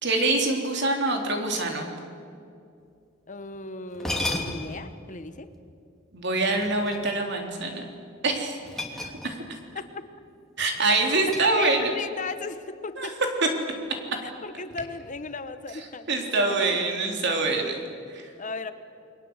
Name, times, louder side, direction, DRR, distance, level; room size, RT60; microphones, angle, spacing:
voice 1, 0.0-1.9 6.1-7.8 8.2-8.6 9.2-9.4 10.6-11.9 13.0-13.1 16.1-17.8 18.1-18.3, right 3 dB, 60° right, 3 dB, 3.6 m, -25 dB
voice 2, 3.3-5.5 8.9-9.1 9.7-9.9 11.6-13.2 14.2-16.7 18.4-18.7, left 3 dB, 40° left, 11 dB, 1.2 m, -36 dB
sound 1, 3.5-3.6 3.9-4.8 6.6-7.5 8.6-9.6 9.9-10.1 10.6-12.0, left 2 dB, ahead, 2.8 m, -34 dB
29.0 x 22.5 x 8.1 m, 2.5 s
head